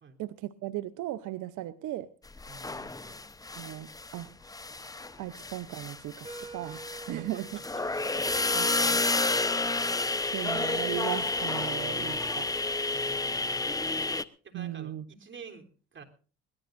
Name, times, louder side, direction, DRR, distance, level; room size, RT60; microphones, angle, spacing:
voice 1, 0.2-2.1 3.6-4.3 5.2-6.8 7.1-7.5 8.5-9.0 10.3-12.5 14.5-15.0, right 14 dB, 80° right, 13 dB, 0.8 m, -37 dB
sound 1, 2.4-4.2 4.5-14.2, left 3 dB, 10° left, 0.9 m, -30 dB
voice 2, 2.5-3.2 7.1-9.4 12.9-13.7 14.4-16.0, right 5 dB, 40° right, 4 dB, 3.5 m, -50 dB
sound 2, 5.0-12.3, right 3 dB, 20° right, 3.2 m, -49 dB
23.0 x 18.0 x 2.6 m, 0.39 s
cardioid pair, 95°, 30 cm